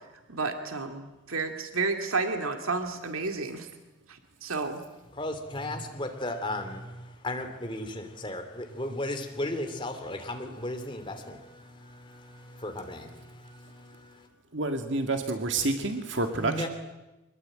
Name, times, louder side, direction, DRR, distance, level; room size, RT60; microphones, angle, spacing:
voice 1, 0.3-3.7 4.1-4.8, right 4 dB, 90° right, 5 dB, 2.3 m, -31 dB
voice 2, 5.1-14.3 16.3-16.7, left 1 dB, 25° left, 5 dB, 2.9 m, -36 dB
voice 3, 14.5-16.7, right 2 dB, 60° right, 5 dB, 2.0 m, -28 dB
24.5 x 21.0 x 8.9 m, 1.1 s
head